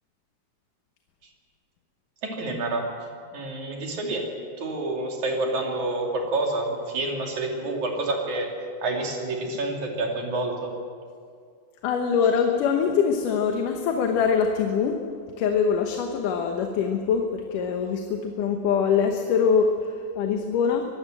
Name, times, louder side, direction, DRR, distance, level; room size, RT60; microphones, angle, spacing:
voice 1, 2.2-2.9 3.3-8.5 8.8-10.7, right 2 dB, 65° right, 1 dB, 4.0 m, -28 dB
voice 2, 11.8-15.0 15.4-20.9, left 6 dB, 80° left, 4 dB, 2.7 m, -23 dB
23.0 x 16.0 x 7.7 m, 2.2 s
omnidirectional pair, 3.7 m